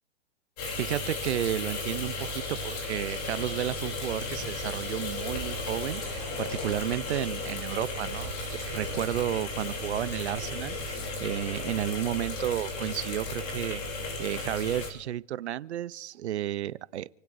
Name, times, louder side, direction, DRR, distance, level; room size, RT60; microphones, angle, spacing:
sound 1, 0.6-14.9, left 3 dB, 35° left, 3.2 m, -35 dB
voice 1, 0.8-17.1, right 12 dB, 65° right, 0.6 m, -32 dB
Sink (filling or washing), 3.3-13.0, right 8 dB, 20° right, 2.3 m, -48 dB
28.0 x 17.0 x 2.6 m
hypercardioid pair, 170°, 36 cm